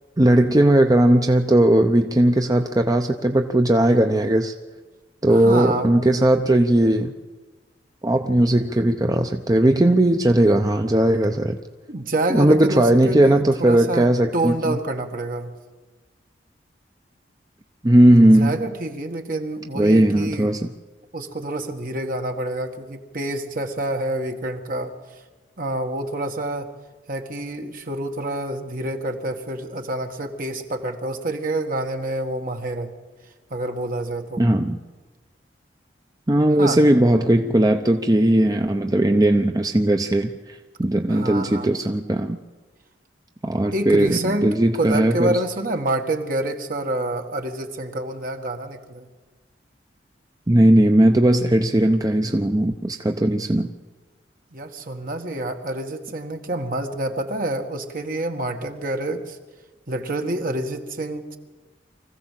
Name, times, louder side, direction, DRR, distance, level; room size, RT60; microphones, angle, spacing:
voice 1, 0.2-4.5 5.2-7.1 8.0-11.6 12.3-14.8 17.8-18.6 19.8-20.7 34.4-34.8 36.3-42.4 43.4-45.4 50.5-53.7, right 1 dB, 20° right, 6 dB, 0.7 m, -18 dB
voice 2, 5.3-5.9 11.9-14.1 14.3-15.5 18.1-20.6 21.1-24.9 25.6-26.7 27.1-32.9 33.5-34.4 36.6-36.8 41.1-41.7 43.7-49.1 54.5-59.4 59.9-61.4, right 1 dB, 50° right, 4 dB, 1.9 m, -27 dB
24.5 x 15.5 x 7.6 m, 1.3 s
head